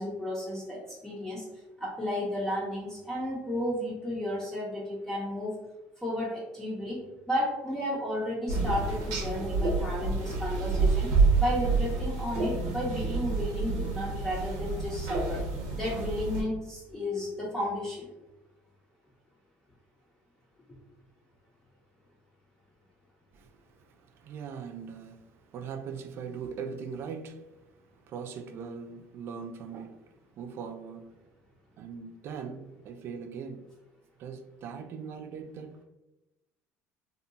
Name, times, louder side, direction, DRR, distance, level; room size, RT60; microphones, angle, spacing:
voice 1, 0.0-1.4 1.8-5.5 6.0-7.0 7.3-11.1 11.4-15.4 15.7-18.1, left 1 dB, 10° left, 0.6 m, -33 dB
sound 1, 8.5-16.4, right 4 dB, 85° right, 0.7 m, -28 dB
voice 2, 23.3-27.4 28.0-31.1 31.8-33.6 34.2-35.8, right 6 dB, 50° right, 0.3 m, -41 dB
2.7 x 2.2 x 2.6 m
cardioid pair, 125°, 5 cm